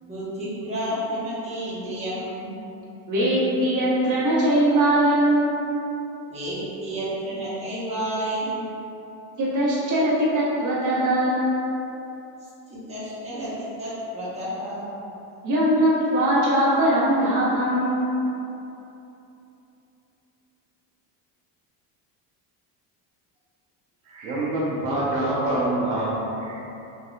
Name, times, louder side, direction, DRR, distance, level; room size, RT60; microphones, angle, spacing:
voice 1, 0.0-2.5 6.3-8.7 12.7-14.9, right 1 dB, 15° right, -10 dB, 1.2 m, -31 dB
voice 2, 3.1-5.6 9.4-11.5 15.4-18.0, right 1 dB, 40° right, -8 dB, 1.3 m, -21 dB
voice 3, 24.1-26.6, right 1 dB, 80° right, -8 dB, 1.0 m, -26 dB
3.8 x 2.7 x 2.5 m, 2.9 s
supercardioid pair, 90°, 47 cm